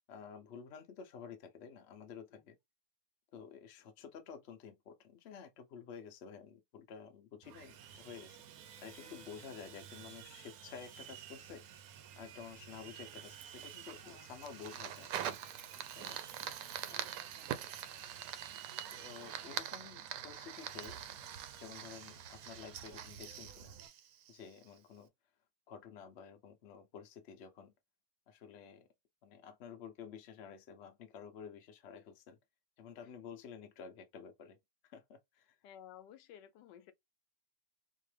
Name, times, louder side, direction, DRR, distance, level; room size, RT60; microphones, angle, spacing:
voice 1, 0.1-2.6 3.3-8.4 8.8-11.6 12.2-15.1 15.9-16.2 18.9-21.0 21.6-23.7 24.3-25.1 25.7-27.7 28.3-28.9 29.2-32.4 32.8-34.6 34.8-35.6, left 7 dB, 50° left, 0.8 m, -51 dB
Sawing, 7.4-23.9, right 9 dB, 70° right, 1.0 m, -53 dB
Fire, 13.4-24.8, right 10 dB, 85° right, 1.2 m, -44 dB
voice 2, 35.6-36.9, left 10 dB, 90° left, 1.3 m, -55 dB
4.4 x 2.5 x 3.2 m
omnidirectional pair, 1.8 m